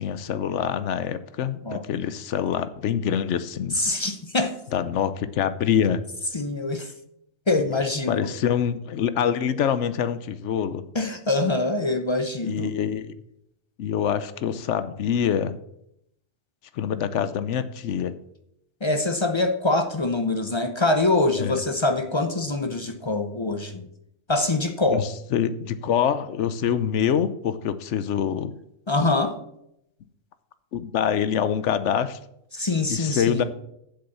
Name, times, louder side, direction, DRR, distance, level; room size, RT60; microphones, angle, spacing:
voice 1, 0.0-3.7 4.7-6.0 8.1-10.9 12.4-13.1 13.8-15.6 16.7-18.1 21.4-21.6 24.9-28.6 30.7-32.2 32.9-33.4, left 8 dB, 65° left, 0.9 m, -25 dB
voice 2, 3.7-4.5 6.3-6.9 7.5-8.3 10.9-12.7 18.8-23.9 24.3-25.1 28.9-29.4 32.5-33.4, left 2 dB, 35° left, 0.5 m, -24 dB
7.7 x 6.8 x 7.0 m
omnidirectional pair, 1.4 m